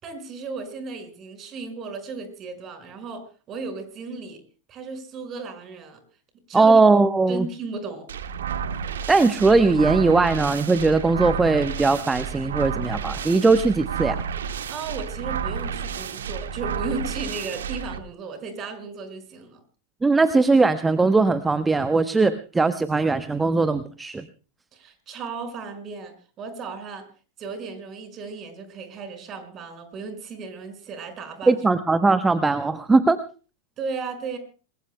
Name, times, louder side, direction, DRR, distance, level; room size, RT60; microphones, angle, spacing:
voice 1, 0.0-4.4 4.7-6.0 6.5-6.8 7.3-8.1 14.5-19.6 24.7-27.0 27.4-31.6 33.8-34.4, right 4 dB, 30° right, 7 dB, 5.6 m, -35 dB
voice 2, 6.5-7.5 9.1-14.2 20.0-24.3 31.5-33.2, right 3 dB, 10° right, 12 dB, 0.9 m, -19 dB
sound 1, 8.1-18.0, right 7 dB, 65° right, 1.6 m, -31 dB
27.5 x 21.0 x 2.2 m, 0.37 s
figure-of-eight pair, 90°, 0 cm